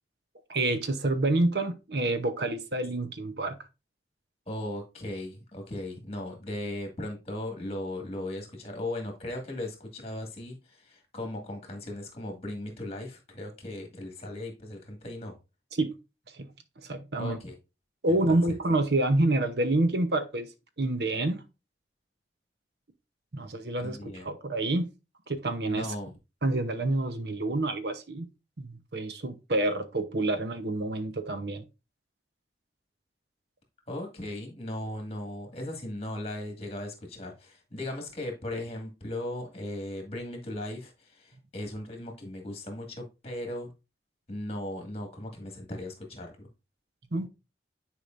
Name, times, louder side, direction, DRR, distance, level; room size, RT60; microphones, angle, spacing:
voice 1, 0.5-3.6 15.7-15.9 16.3-16.5 16.8-17.4 18.0-20.5 20.8-21.4 23.3-24.9 25.3-25.9 26.4-28.3 28.6-31.6 47.1-47.3, right 2 dB, 65° right, 0.9 m, -28 dB
voice 2, 4.5-15.4 17.2-17.5 18.0-18.6 23.8-24.2 25.7-26.1 33.9-43.7 44.3-46.5, left 1 dB, 35° left, 2.0 m, -37 dB
10.0 x 4.9 x 2.6 m
head